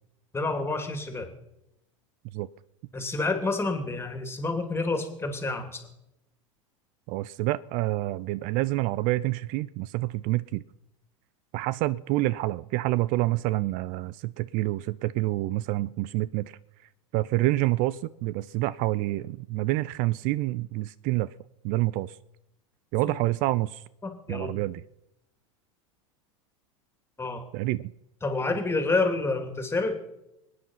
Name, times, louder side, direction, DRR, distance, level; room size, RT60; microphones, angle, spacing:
voice 1, 0.3-1.3 2.9-5.8 24.0-24.5 27.2-27.4 28.2-30.0, left 3 dB, 15° left, 6 dB, 2.9 m, -28 dB
voice 2, 7.1-10.6 11.5-16.5 17.1-21.3 21.6-22.2 22.9-23.8 24.3-24.8 27.5-27.9, right 18 dB, 50° right, 20 dB, 0.5 m, -27 dB
25.0 x 9.6 x 5.7 m, 0.89 s
hypercardioid pair, 95°, 17 cm